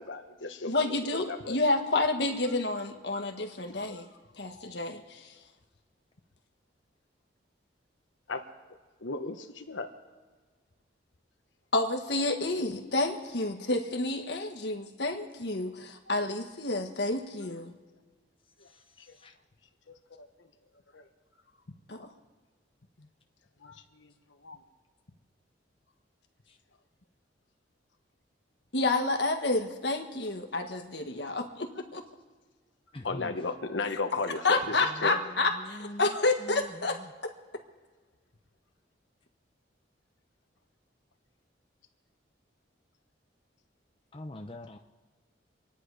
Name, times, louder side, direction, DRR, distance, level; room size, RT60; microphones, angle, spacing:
voice 1, 0.0-0.7 1.1-1.5 3.7-3.8 4.6-4.7 8.3-8.4 9.0-9.9 20.2-20.3 20.9-21.0 23.6-23.7 24.4-24.6 33.0-34.6 35.0-35.2, left 3 dB, 80° left, 6 dB, 1.2 m, -34 dB
voice 2, 0.6-4.1 4.4-5.2 11.7-17.7 21.9-22.1 28.7-32.0 33.8-34.0 34.4-37.0, left 2 dB, 65° left, 4 dB, 1.6 m, -29 dB
voice 3, 32.9-33.4 34.9-37.1 44.1-44.8, left 1 dB, 30° left, 4 dB, 0.7 m, -44 dB
27.0 x 10.0 x 4.9 m, 1.4 s
head